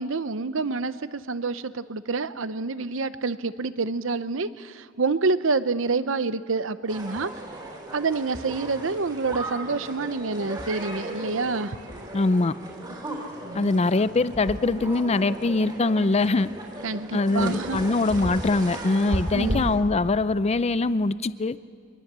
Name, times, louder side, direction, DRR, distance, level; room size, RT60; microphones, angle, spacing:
voice 1, 0.0-7.3 7.9-11.8 13.4-13.7 16.8-17.9 19.3-19.7, right 4 dB, 75° right, 14 dB, 0.8 m, -27 dB
sound 1, 6.9-19.8, right 1 dB, 20° right, 3.5 m, -35 dB
voice 2, 12.1-12.5 13.5-16.5 17.1-21.6, left 3 dB, 30° left, 15 dB, 0.5 m, -23 dB
24.5 x 21.0 x 7.5 m, 2.1 s
head